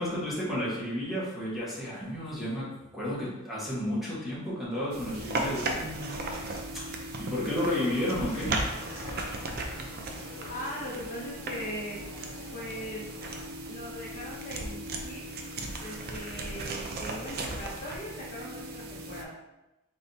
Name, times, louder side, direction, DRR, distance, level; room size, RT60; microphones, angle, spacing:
voice 1, 0.0-6.8 7.2-8.5, left 1 dB, ahead, -9 dB, 1.4 m, -32 dB
sound 1, 4.9-19.2, right 2 dB, 45° right, 0.5 m, -36 dB
sound 2, 7.6-13.5, left 3 dB, 80° left, 0.5 m, -47 dB
voice 2, 10.5-12.0 12.5-13.0 13.7-15.2 15.8-19.3, equal, 40° left, -6 dB, 0.8 m, -39 dB
4.0 x 3.5 x 2.8 m, 0.97 s
head